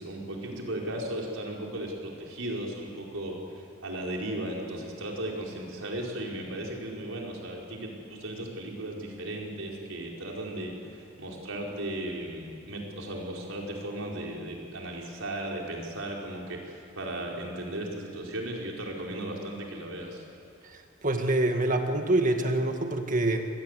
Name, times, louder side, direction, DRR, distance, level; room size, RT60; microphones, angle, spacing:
voice 1, 0.0-20.2, right 1 dB, 90° right, -1 dB, 5.0 m, -36 dB
voice 2, 20.6-23.5, right 2 dB, 40° right, 5 dB, 1.9 m, -26 dB
27.0 x 20.5 x 8.3 m, 2.6 s
head